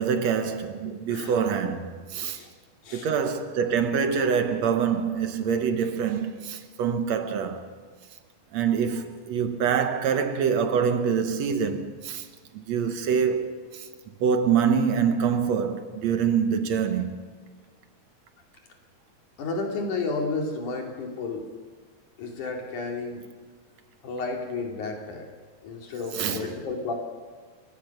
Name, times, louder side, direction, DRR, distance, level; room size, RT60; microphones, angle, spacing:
voice 1, 0.0-2.4 2.9-7.6 8.5-12.3 12.5-17.1 26.1-26.5, right 7 dB, 70° right, 2.3 m, -25 dB
voice 2, 0.9-1.3 2.4-2.5 2.8-3.1 19.4-21.4 22.2-23.2 24.0-25.3 25.6-26.9, left 3 dB, 85° left, 4.1 m, -32 dB
30.0 x 16.0 x 5.9 m
omnidirectional pair, 3.4 m